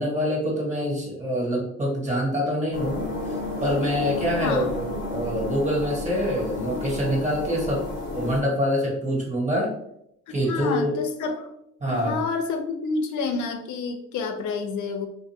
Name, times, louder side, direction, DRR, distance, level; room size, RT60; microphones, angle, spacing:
voice 1, 0.0-7.8 8.1-9.7 10.3-11.0 11.8-12.2, equal, 25° right, -4 dB, 1.2 m, -25 dB
sound 1, 2.7-8.4, left 2 dB, 40° left, 0.8 m, -31 dB
voice 2, 4.4-4.7 10.3-11.5 11.9-15.1, left 4 dB, 75° left, 6 dB, 0.5 m, -29 dB
2.6 x 2.4 x 2.7 m, 0.76 s
cardioid pair, 90°, 30 cm